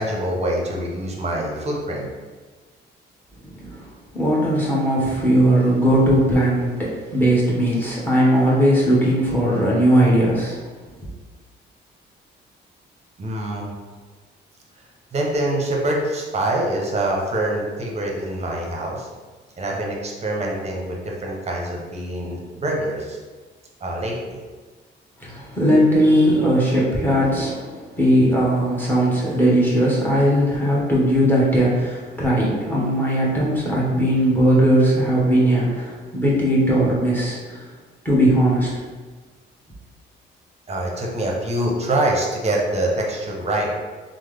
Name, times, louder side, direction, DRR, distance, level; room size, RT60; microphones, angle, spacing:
voice 1, 0.0-2.1 13.2-13.7 15.1-19.1 19.6-23.2 23.8-24.4 40.7-43.7, right 1 dB, 35° right, -1 dB, 0.7 m, -25 dB
voice 2, 3.5-3.9 4.1-10.6 25.2-37.6 38.0-38.7, equal, 10° left, -6 dB, 1.1 m, -18 dB
3.2 x 2.1 x 3.3 m, 1.4 s
cardioid pair, 90°, 20 cm